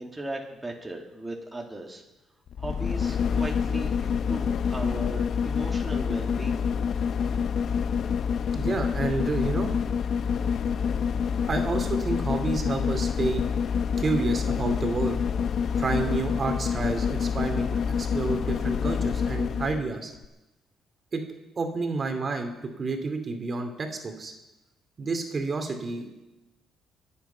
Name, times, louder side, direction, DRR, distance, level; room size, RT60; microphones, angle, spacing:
voice 1, 0.0-2.0 2.6-6.6, right 1 dB, 15° right, 0 dB, 2.2 m, -37 dB
sound 1, 2.5-19.9 20.2-20.3, left 6 dB, 60° left, 0.5 m, -27 dB
voice 2, 8.5-9.7 11.5-13.4 14.0-15.2 15.8-17.7 18.0-20.1 21.1-21.2 21.6-24.3 25.0-26.1, right 3 dB, 40° right, 5 dB, 2.6 m, -29 dB
25.0 x 8.5 x 5.7 m, 1.0 s
cardioid pair, 90°, 0 cm